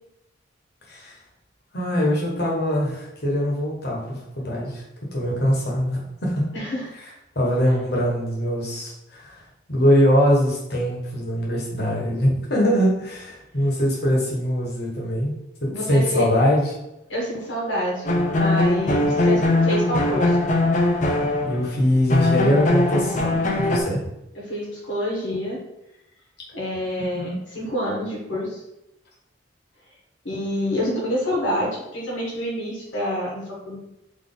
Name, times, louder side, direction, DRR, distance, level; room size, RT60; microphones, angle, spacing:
voice 1, 1.7-4.8 5.1-6.5 7.3-9.4 9.7-15.3 15.6-16.8 21.4-23.3 23.6-24.1 27.0-27.3, equal, 60° left, -3 dB, 1.3 m, -22 dB
voice 2, 6.5-6.9 15.7-16.2 17.1-20.3 24.3-25.6 26.5-28.6 30.2-33.8, equal, 90° left, -4 dB, 1.4 m, -27 dB
sound 1, 18.0-21.7 22.1-23.8, left 2 dB, 40° left, 0.6 m, -21 dB
4.0 x 3.0 x 3.9 m, 0.88 s
head